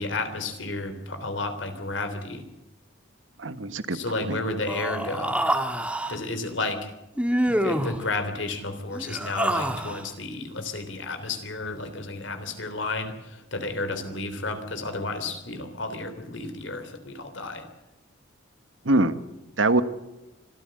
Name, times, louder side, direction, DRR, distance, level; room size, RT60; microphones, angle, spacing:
voice 1, 0.0-2.4 3.9-5.4 6.1-6.9 7.5-17.6, left 2 dB, 70° left, 8 dB, 3.4 m, -32 dB
voice 2, 3.4-4.4 18.8-19.2 19.6-19.8, right 2 dB, 75° right, 12 dB, 1.5 m, -23 dB
Human voice, 4.7-6.2 7.2-8.0 8.9-10.1, right 1 dB, 5° right, 1.7 m, -26 dB
25.5 x 14.5 x 7.8 m, 1.0 s
head